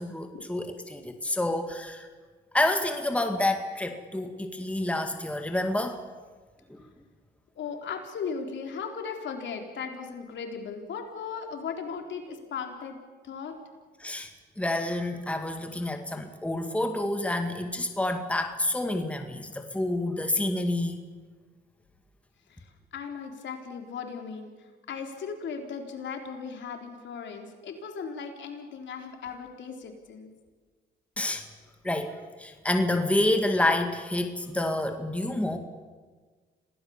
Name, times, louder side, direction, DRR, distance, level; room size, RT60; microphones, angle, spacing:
voice 1, 0.0-2.1 2.5-6.0 6.7-6.8 14.0-14.3 14.6-21.0 31.2-31.4 31.8-32.1 32.4-35.6, left 1 dB, 5° left, 5 dB, 2.2 m, -28 dB
voice 2, 7.6-13.0 13.2-13.5 22.5-22.7 22.9-24.5 24.9-30.3, left 6 dB, 65° left, 3 dB, 4.0 m, -37 dB
26.5 x 17.5 x 7.3 m, 1.5 s
cardioid pair, 90°, 20 cm